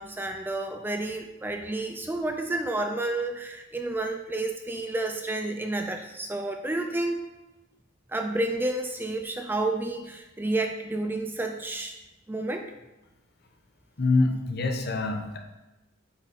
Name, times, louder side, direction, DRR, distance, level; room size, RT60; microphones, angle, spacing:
voice 1, 0.0-7.2 8.1-12.0 12.3-12.7, right 2 dB, 10° right, 4 dB, 0.3 m, -30 dB
voice 2, 14.0-15.4, left 3 dB, 50° left, 3 dB, 0.8 m, -25 dB
8.0 x 4.0 x 4.1 m, 1.0 s
head